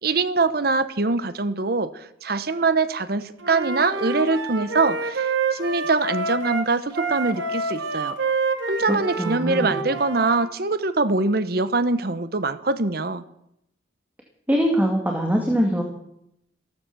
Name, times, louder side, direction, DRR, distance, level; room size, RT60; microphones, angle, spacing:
voice 1, 0.0-8.2 8.7-13.2, right 3 dB, 55° right, 13 dB, 1.0 m, -23 dB
Wind instrument woodwind instrument, 3.4-10.5, right 4 dB, 85° right, 1.9 m, -28 dB
voice 2, 8.9-9.8 14.5-15.8, equal, 10° right, 1 dB, 2.2 m, -22 dB
15.5 x 13.0 x 7.0 m, 0.78 s
head